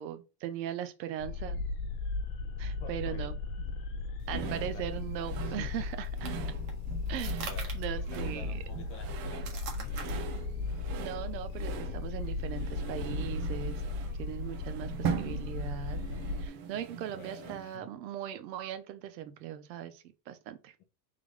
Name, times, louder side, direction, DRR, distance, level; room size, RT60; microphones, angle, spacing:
voice 1, 0.0-1.6 2.6-3.4 4.3-6.3 7.1-8.6 11.0-13.8 14.2-16.0 16.4-20.7, right 11 dB, 85° right, 1.0 m, -39 dB
sound 1, 1.2-16.5, left 3 dB, 60° left, 1.1 m, -36 dB
voice 2, 2.8-3.3 3.6-3.8 4.3-4.8 5.3-5.9 7.4-10.4 17.1-17.8, left 5 dB, 25° left, 0.6 m, -49 dB
sound 2, 4.3-17.8, right 7 dB, 40° right, 0.7 m, -41 dB
sound 3, 5.7-14.0, right 5 dB, 65° right, 1.6 m, -47 dB
3.8 x 3.4 x 3.4 m
supercardioid pair, 165°, 50 cm